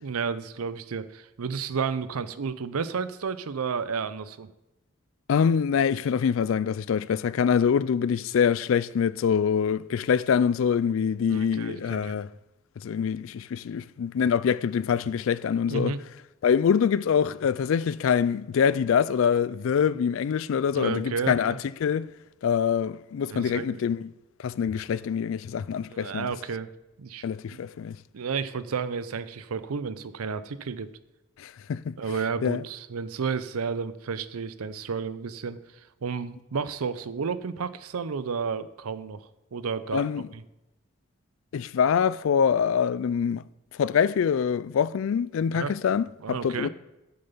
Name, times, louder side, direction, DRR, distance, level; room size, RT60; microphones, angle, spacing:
voice 1, 0.0-4.5 11.3-12.2 15.7-16.0 20.7-21.6 23.3-23.8 25.9-26.7 27.0-27.6 28.1-30.9 32.0-35.6 36.0-40.4 45.5-45.7 46.2-46.7, right 5 dB, 90° right, 0.6 m, -32 dB
voice 2, 5.3-12.3 12.8-15.9 16.4-21.5 21.8-22.1 22.4-24.1 24.4-26.3 27.2-28.0 31.4-31.9 32.4-32.6 39.9-40.3 41.5-43.4 43.8-46.7, left 7 dB, 70° left, 0.3 m, -25 dB
7.7 x 6.8 x 5.6 m
head